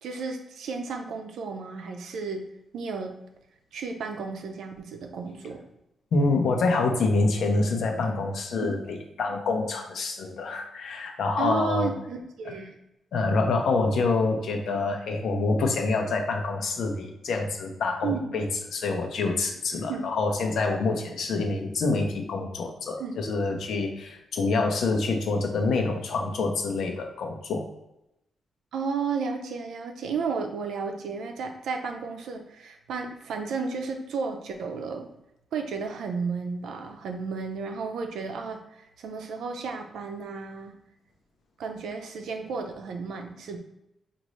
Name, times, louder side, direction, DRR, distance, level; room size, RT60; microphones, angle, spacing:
voice 1, 0.0-2.5 2.7-3.2 3.7-5.6 8.6-8.7 11.4-12.7 18.0-18.3 19.9-20.0 23.0-23.1 28.7-35.1 35.5-40.7 41.6-43.6, right 5 dB, 85° right, 4 dB, 0.6 m, -33 dB
voice 2, 6.1-11.9 12.5-12.6 13.1-18.4 18.7-27.7, left 3 dB, 70° left, 3 dB, 0.8 m, -26 dB
5.1 x 2.6 x 3.1 m, 0.86 s
cardioid pair, 130°, 0 cm